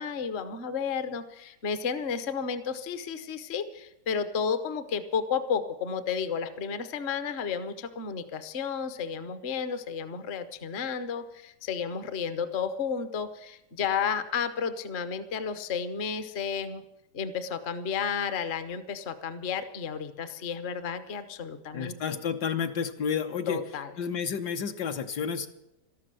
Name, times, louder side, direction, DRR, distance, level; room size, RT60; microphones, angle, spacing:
voice 1, 0.0-16.8 17.1-22.2 23.5-23.9, left 6 dB, 45° left, 11 dB, 1.0 m, -32 dB
voice 2, 21.7-23.6 24.0-25.5, left 7 dB, 65° left, 6 dB, 1.5 m, -30 dB
13.5 x 12.0 x 7.6 m, 0.90 s
omnidirectional pair, 1.9 m